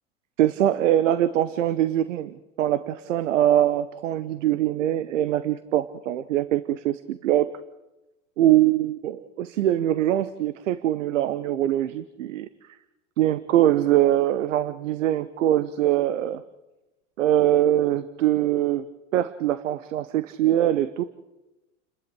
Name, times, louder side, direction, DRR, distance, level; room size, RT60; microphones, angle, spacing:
voice 1, 0.4-7.5 8.4-12.5 13.2-16.4 17.2-18.8 19.1-21.0, right 12 dB, 90° right, 15 dB, 1.0 m, -23 dB
29.5 x 12.5 x 8.8 m, 1.0 s
supercardioid pair, 110°, 37 cm